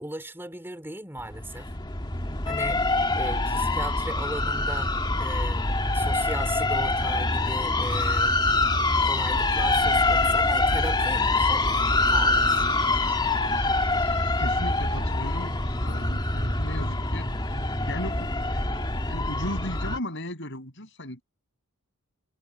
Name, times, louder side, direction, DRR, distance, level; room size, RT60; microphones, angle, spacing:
voice 1, 0.0-1.7 2.4-2.8 3.2-5.7 5.9-8.4 9.0-12.8, right 1 dB, 10° right, 3.8 m, -37 dB
sound 1, 1.2-20.0, left 2 dB, 20° left, 2.0 m, -25 dB
voice 2, 14.4-17.3 17.7-18.6 18.9-21.2, left 1 dB, 55° left, 6.7 m, -36 dB
head